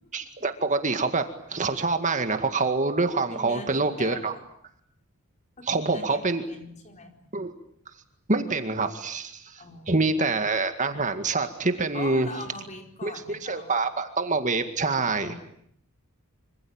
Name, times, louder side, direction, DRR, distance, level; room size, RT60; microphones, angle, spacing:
voice 1, 0.1-1.2 1.5-4.3 5.7-6.4 7.3-7.5 8.3-12.3 13.0-15.4, right 3 dB, 35° right, 7 dB, 2.0 m, -26 dB
voice 2, 3.3-4.4 5.6-6.2 6.5-7.4 9.6-10.3 11.9-13.7 15.0-15.4, left 2 dB, 35° left, 4 dB, 4.5 m, -42 dB
26.0 x 25.5 x 8.9 m, 0.70 s
head